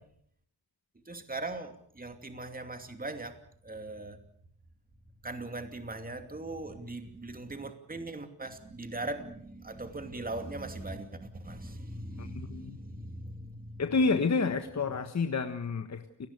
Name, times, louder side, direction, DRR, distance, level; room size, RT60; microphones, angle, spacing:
voice 1, 1.0-3.4 3.6-4.2 5.2-13.8, right 2 dB, 20° right, 7 dB, 2.7 m, -40 dB
voice 2, 12.2-12.8 13.8-16.3, left 4 dB, 40° left, 7 dB, 1.5 m, -29 dB
29.5 x 18.5 x 6.9 m, 0.67 s
wide cardioid pair, 125°, 40 cm